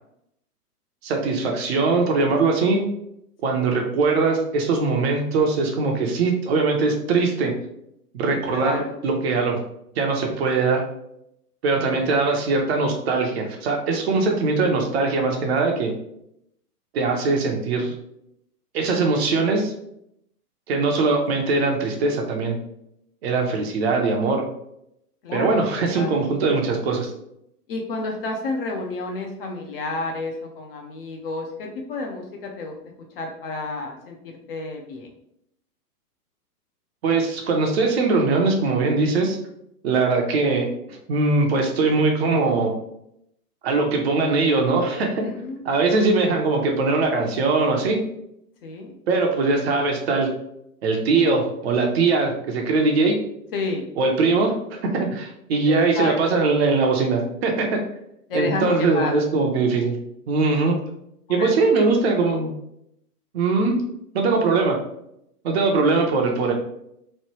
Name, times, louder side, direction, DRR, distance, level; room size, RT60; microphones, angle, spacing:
voice 1, 1.0-2.8 3.4-7.5 8.1-9.6 10.0-10.8 11.6-15.9 16.9-17.9 18.7-19.7 20.7-22.6 23.2-24.4 25.3-27.1 37.0-39.4 39.8-42.7 43.6-45.2 45.6-48.0 49.1-50.3 50.8-53.2 54.0-57.8 58.3-60.0 60.3-60.8 61.3-62.5 63.3-63.7 64.1-64.8 65.4-66.5, right 3 dB, 45° right, 2 dB, 0.6 m, -21 dB
voice 2, 8.5-9.0 11.8-12.2 25.2-25.7 25.9-26.1 27.7-32.7 33.2-35.1 45.2-45.7 48.6-49.0 53.5-53.9 55.7-56.2 58.3-59.1 61.3-61.9, left 3 dB, 40° left, 1 dB, 0.5 m, -30 dB
3.1 x 2.1 x 2.9 m, 0.77 s
hypercardioid pair, 120°, 47 cm